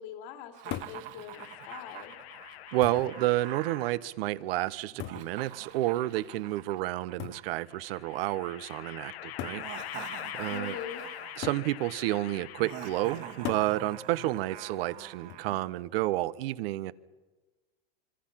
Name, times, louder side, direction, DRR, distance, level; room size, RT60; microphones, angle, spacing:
voice 1, 0.0-2.2 10.5-11.0, left 8 dB, 55° left, 6 dB, 2.8 m, -43 dB
Laughter, 0.5-3.9 4.9-8.2 9.4-11.5 12.6-15.5, right 12 dB, 50° right, 2.0 m, -45 dB
sound 1, 0.7-1.1 2.1-2.2 2.8-3.2 5.0-5.4 7.2-7.5 8.5-8.6 9.4-9.7 11.4-11.7 13.4-13.8 15.3-15.7, left 13 dB, 40° left, 0.9 m, -38 dB
sound 2, 1.3-4.0 5.1-6.1 7.7-13.7, left 13 dB, 80° left, 1.4 m, -44 dB
voice 2, 2.7-9.6 10.4-10.8 11.4-16.9, right 16 dB, 70° right, 17 dB, 1.0 m, -30 dB
26.0 x 24.5 x 5.8 m, 1.2 s
supercardioid pair, 145°, 30 cm